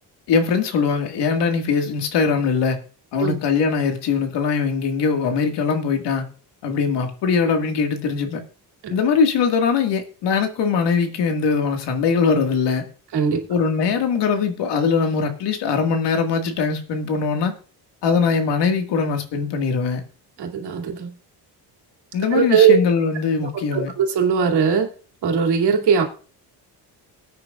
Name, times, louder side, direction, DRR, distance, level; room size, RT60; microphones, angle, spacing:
voice 1, 0.3-2.8 3.1-6.2 6.6-8.4 8.9-12.9 13.5-17.6 18.0-20.0 22.1-23.9, left 5 dB, 90° left, 5 dB, 2.0 m, -21 dB
voice 2, 20.4-21.1 22.3-22.8 23.4-24.9 25.2-26.0, right 6 dB, 80° right, 3 dB, 2.7 m, -19 dB
20.5 x 9.2 x 2.4 m, 0.39 s
cardioid pair, 125°, 40 cm